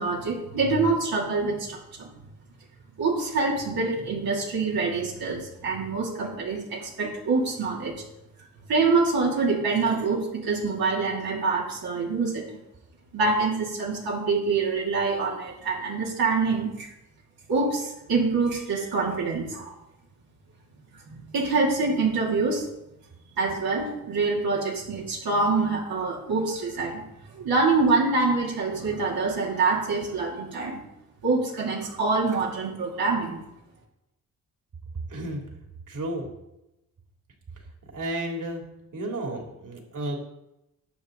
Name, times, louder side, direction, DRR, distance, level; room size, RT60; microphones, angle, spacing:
voice 1, 0.0-2.1 3.0-8.0 8.7-12.5 13.1-16.9 17.5-19.7 21.1-22.7 23.4-27.0 27.3-30.8 31.2-33.4, right 4 dB, 80° right, -4 dB, 2.9 m, -25 dB
voice 2, 35.1-35.4 35.9-36.3 37.5-37.7 37.9-38.6 38.9-40.2, right 1 dB, 60° right, 0 dB, 3.2 m, -32 dB
20.0 x 7.3 x 3.9 m, 0.90 s
cardioid pair, 70°, 36 cm